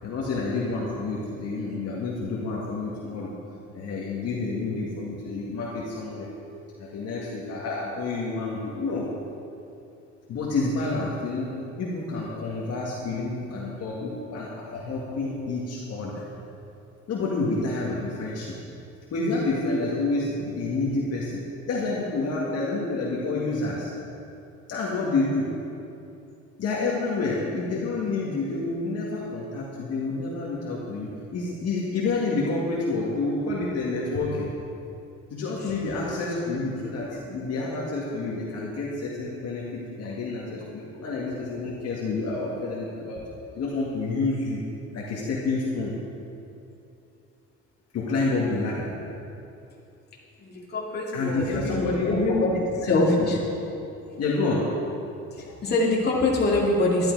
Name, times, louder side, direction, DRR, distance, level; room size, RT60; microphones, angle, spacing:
voice 1, 0.0-3.3 3.7-6.3 6.8-9.1 10.3-11.5 11.8-16.2 17.1-18.5 19.1-21.4 21.7-23.9 24.7-25.5 26.6-34.5 35.3-43.2 43.6-44.6 44.9-45.9 47.9-48.9 51.1-52.2 52.5-53.4 54.2-54.7, left 3 dB, 50° left, -5 dB, 1.9 m, -29 dB
voice 2, 50.7-52.5 52.8-53.4 55.6-57.1, left 2 dB, 30° left, -4 dB, 2.5 m, -23 dB
11.5 x 11.5 x 4.8 m, 2.7 s
cardioid pair, 145°, 31 cm